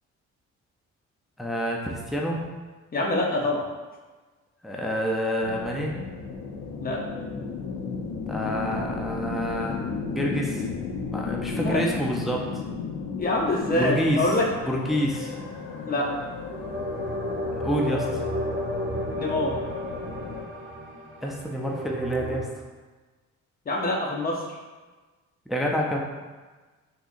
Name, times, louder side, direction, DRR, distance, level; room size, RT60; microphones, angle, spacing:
voice 1, 1.4-2.4 4.6-6.0 8.3-10.7 11.1-12.6 13.7-14.3 14.7-15.3 17.6-18.2 21.2-22.5 25.5-26.0, equal, ahead, -1 dB, 0.4 m, -28 dB
voice 2, 2.9-3.6 6.8-7.0 11.6-11.8 13.2-14.5 15.9-16.1 19.1-19.5 23.7-24.6, left 2 dB, 30° left, -2 dB, 0.8 m, -25 dB
sound 1, 5.4-20.4, left 5 dB, 65° left, 0.5 m, -34 dB
sound 2, 14.1-15.8 16.5-22.4, equal, 40° right, 0.6 m, -33 dB
3.7 x 2.8 x 2.5 m, 1.3 s
cardioid pair, 90°, 30 cm